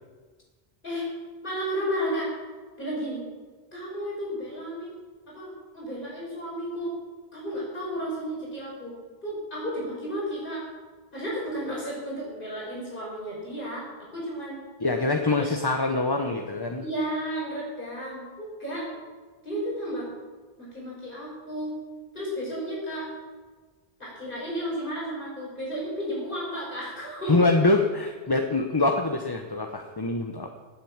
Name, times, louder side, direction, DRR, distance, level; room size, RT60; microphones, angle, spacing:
voice 1, 1.4-2.3 2.8-3.2 3.7-4.9 5.3-6.9 7.3-8.9 9.2-10.7 11.1-13.9 14.1-14.6 15.3-15.5 16.7-18.9 19.4-20.1 20.6-21.8 22.1-23.1 24.0-27.7, equal, 55° left, -5 dB, 5.5 m, -33 dB
voice 2, 14.8-16.8 27.3-30.5, left 2 dB, 25° left, 4 dB, 1.0 m, -24 dB
18.0 x 9.6 x 7.3 m, 1.4 s
omnidirectional pair, 1.1 m